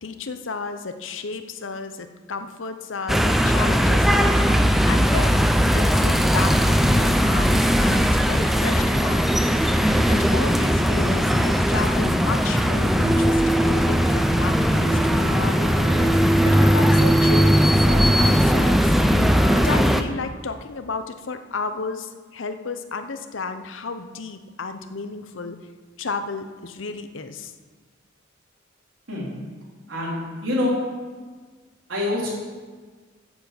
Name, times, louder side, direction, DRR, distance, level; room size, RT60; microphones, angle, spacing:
voice 1, 0.0-9.2 9.6-16.2 16.4-18.9 19.5-25.6 26.0-27.5, left 4 dB, 85° left, 9 dB, 0.8 m, -33 dB
sound 1, 3.1-20.0, equal, ahead, 0.5 m, -19 dB
sound 2, 13.0-18.8, right 1 dB, 20° right, 1.8 m, -26 dB
voice 2, 29.9-30.7 31.9-32.3, left 1 dB, 90° right, -5 dB, 4.1 m, -25 dB
9.5 x 7.1 x 7.8 m, 1.5 s
head